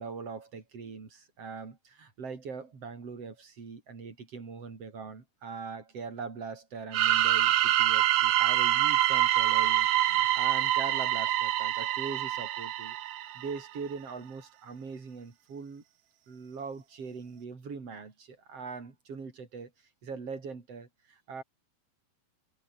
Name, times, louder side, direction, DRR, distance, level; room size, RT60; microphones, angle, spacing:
voice 1, 0.0-13.0 13.3-15.8 16.3-19.7 20.0-21.4, right 5 dB, 35° right, 5.0 m, -41 dB
sound 1, 6.9-13.6, right 13 dB, 80° right, 1.6 m, -26 dB
omnidirectional pair, 4.8 m